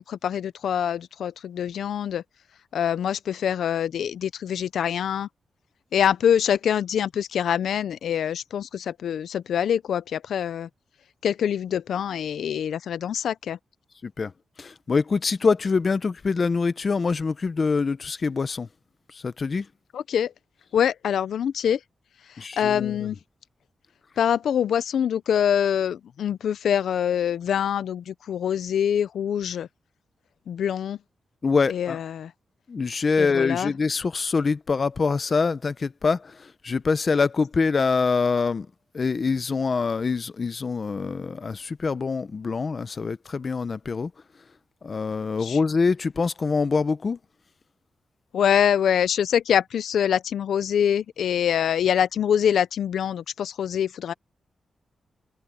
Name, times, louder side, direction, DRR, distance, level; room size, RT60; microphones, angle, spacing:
voice 1, 0.0-2.2 2.7-5.3 5.9-10.7 11.2-13.6 19.9-20.3 20.7-21.8 22.3-23.2 24.2-29.7 30.5-31.0 31.7-32.3 33.2-33.7 45.4-45.6 48.3-54.1, left 9 dB, 85° left, 0.5 m, -24 dB
voice 2, 14.6-18.7 19.1-19.7 22.4-23.0 31.4-32.0 32.7-38.7 38.9-44.1 44.8-47.2, left 4 dB, 35° left, 0.7 m, -25 dB
wide cardioid pair, 145°, 0 cm